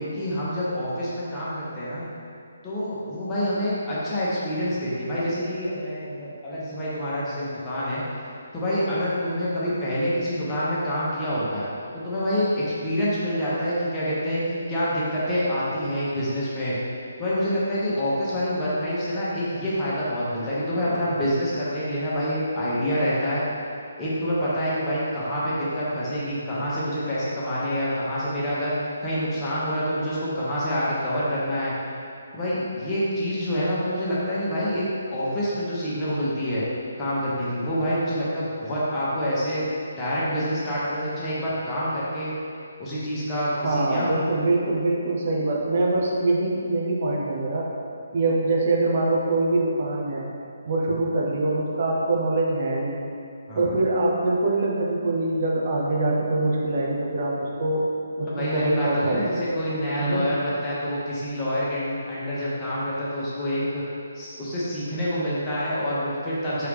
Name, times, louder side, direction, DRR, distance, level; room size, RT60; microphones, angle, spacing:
voice 1, 0.0-2.0 2.6-8.0 8.5-11.6 11.9-16.8 17.2-23.4 24.0-28.7 29.0-31.7 32.3-34.8 35.1-36.6 37.0-39.7 40.0-42.3 42.8-44.1 53.5-53.8 58.3-63.8 64.1-66.7, equal, 20° left, -9 dB, 0.9 m, -27 dB
voice 2, 43.5-47.7 48.1-50.3 50.7-53.0 53.5-57.9 58.2-59.4 60.0-60.3, right 2 dB, 50° right, -3 dB, 0.8 m, -24 dB
4.6 x 3.0 x 3.4 m, 2.5 s
figure-of-eight pair, 150°, 0 cm